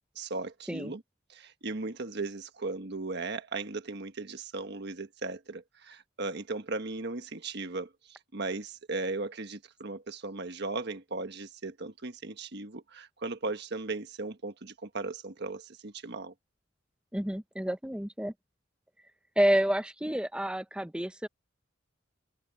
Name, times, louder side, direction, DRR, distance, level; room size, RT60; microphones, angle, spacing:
voice 1, 0.1-1.0 1.3-16.3, right 3 dB, 55° right, 1.4 m, -37 dB
voice 2, 17.1-18.3 19.4-21.3, right 1 dB, 5° right, 1.0 m, -29 dB
head